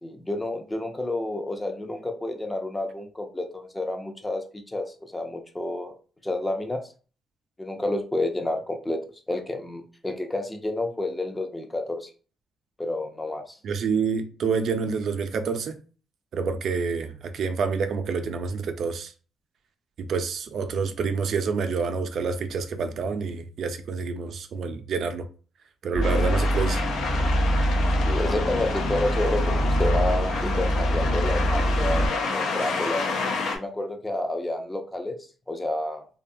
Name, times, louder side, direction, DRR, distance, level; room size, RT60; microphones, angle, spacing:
voice 1, 0.0-5.9 6.2-6.8 7.6-9.0 9.3-12.1 12.8-13.6 28.0-33.0 33.5-35.2 35.5-36.1, left 2 dB, 15° left, 0.5 m, -30 dB
voice 2, 13.6-15.8 16.3-19.1 20.0-25.2 25.8-26.8, right 5 dB, 65° right, 0.3 m, -28 dB
sound 1, 25.9-32.1, equal, 45° left, 0.7 m, -24 dB
sound 2, 26.0-33.6, left 4 dB, 80° left, 0.5 m, -30 dB
2.6 x 2.2 x 2.6 m
cardioid pair, 90°, 0 cm